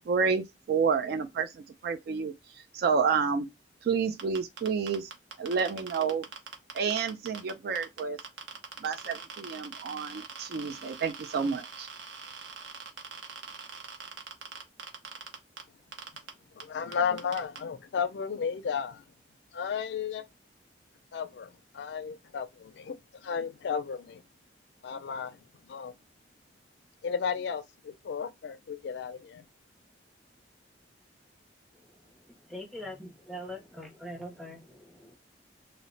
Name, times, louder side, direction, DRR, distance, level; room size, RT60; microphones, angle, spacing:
voice 1, 0.0-2.3 2.7-3.5 3.8-5.1 5.4-6.3 6.7-8.2 8.8-11.9, right 5 dB, 55° right, 0.3 m, -29 dB
sound 1, 4.2-7.5 7.8-15.6 15.9-16.3 16.6-16.7 16.9-17.6, right 6 dB, 85° right, 0.6 m, -42 dB
voice 2, 16.5-19.0 19.5-20.2 21.1-24.2 24.8-25.9 27.0-29.4, left 6 dB, 70° left, 0.4 m, -34 dB
voice 3, 32.3-35.2, equal, ahead, 0.5 m, -42 dB
2.1 x 2.0 x 3.8 m
head